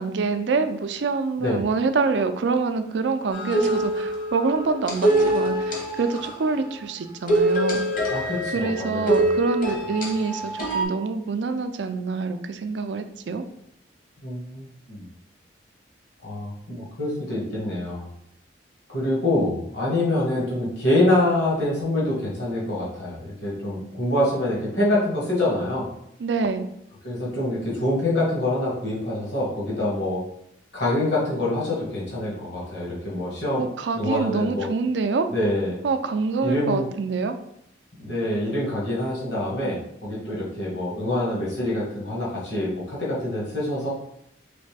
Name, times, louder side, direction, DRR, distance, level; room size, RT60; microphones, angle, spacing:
voice 1, 0.0-7.8 8.5-13.4 26.2-26.7 33.6-35.3 35.8-37.4, right 4 dB, 70° right, 9 dB, 0.4 m, -26 dB
sound 1, 3.3-6.6 7.3-10.8, right 1 dB, 45° left, 1.0 m, -24 dB
voice 2, 8.1-9.2 14.2-15.1 16.2-18.1 18.9-25.9 27.0-30.2 30.7-33.7 33.9-34.7 35.3-35.8 36.4-36.9 38.0-43.9, left 1 dB, 65° left, -6 dB, 1.6 m, -25 dB
4.1 x 3.2 x 3.4 m, 0.74 s
head